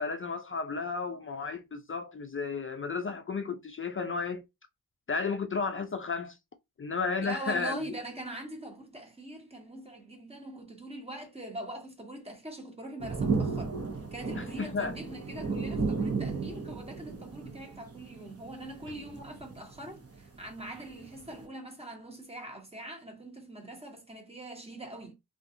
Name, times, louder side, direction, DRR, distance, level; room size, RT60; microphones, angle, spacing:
voice 1, 0.0-4.4 5.1-6.4 6.8-7.8 14.3-15.0, left 4 dB, 35° left, 0.4 m, -33 dB
voice 2, 7.2-13.7 14.1-25.1, right 1 dB, 15° right, 1.1 m, -42 dB
sound 1, 13.0-21.4, right 4 dB, 35° right, 0.9 m, -34 dB
2.5 x 2.4 x 2.6 m
cardioid pair, 60°, 39 cm